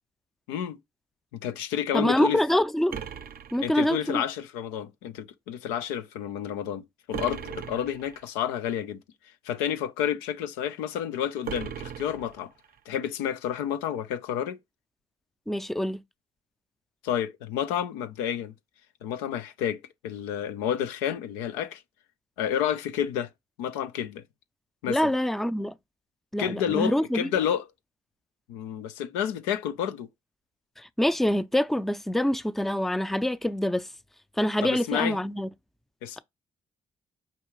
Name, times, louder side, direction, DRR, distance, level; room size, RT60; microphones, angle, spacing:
voice 1, 1.3-2.4 3.6-9.0 9.4-12.5 12.9-14.6 17.0-18.5 19.0-21.8 22.4-23.3 23.6-24.2 24.8-25.0 26.4-27.6 28.5-30.1 34.6-35.2 36.0-36.2, left 9 dB, 90° left, 0.5 m, -30 dB
voice 2, 1.9-3.0 3.5-4.2 15.5-16.0 24.9-25.7 26.3-27.3 30.8-33.9 34.4-35.5, left 1 dB, ahead, 0.4 m, -25 dB
sound 1, 2.9-4.3 7.1-8.3 11.4-12.8, right 8 dB, 55° right, 0.5 m, -38 dB
5.4 x 2.4 x 3.0 m
hypercardioid pair, 45°, 18 cm